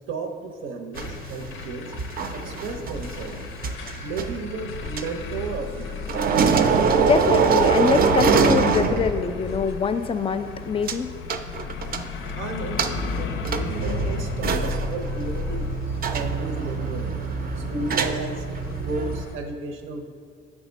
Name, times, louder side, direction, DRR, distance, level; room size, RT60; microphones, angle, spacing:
voice 1, 0.1-1.9 2.3-3.4 4.0-6.0 12.3-15.7 16.1-17.2 17.6-18.5 18.8-20.0, right 3 dB, 90° right, 5 dB, 0.7 m, -33 dB
sound 1, 0.9-19.4, left 5 dB, 85° left, 0.5 m, -35 dB
sound 2, 1.0-5.8 6.1-9.5 9.7-9.8 10.9-11.0 11.3-12.3 12.8-19.2, right 5 dB, 50° right, 0.4 m, -24 dB
voice 2, 7.0-11.1, left 5 dB, 30° left, 10 dB, 0.4 m, -24 dB
7.2 x 3.5 x 5.1 m, 2.1 s
cardioid pair, 90°, 20 cm